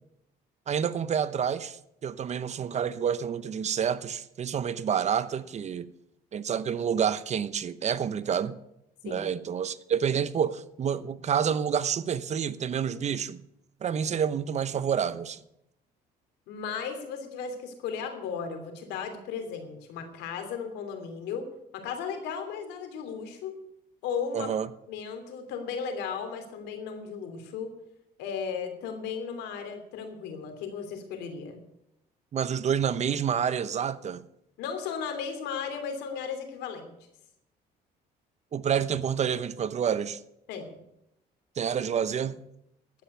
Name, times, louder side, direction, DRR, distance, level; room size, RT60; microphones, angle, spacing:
voice 1, 0.7-5.9 6.3-8.6 9.0-13.4 13.8-15.4 24.3-24.7 32.3-34.2 38.5-40.2 41.6-42.4, right 8 dB, 40° right, 0.9 m, -28 dB
voice 2, 16.5-21.5 21.7-23.5 24.0-24.5 24.9-27.7 28.2-31.6 34.6-36.9 40.5-40.8, left 6 dB, 90° left, 3.0 m, -35 dB
11.5 x 8.9 x 9.4 m
cardioid pair, 110°, 17 cm